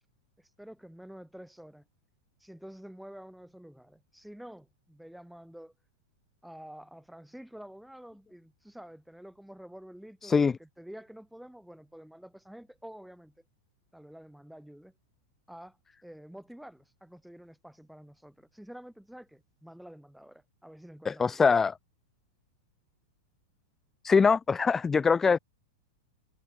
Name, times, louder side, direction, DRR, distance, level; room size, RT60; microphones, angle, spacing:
voice 1, 0.4-1.8 2.4-5.7 6.4-13.3 13.9-14.9 15.5-21.5, equal, ahead, 7.7 m, -49 dB
voice 2, 10.2-10.5 21.1-21.7 24.0-25.4, left 5 dB, 15° left, 0.3 m, -23 dB
figure-of-eight pair, 95°, 2 cm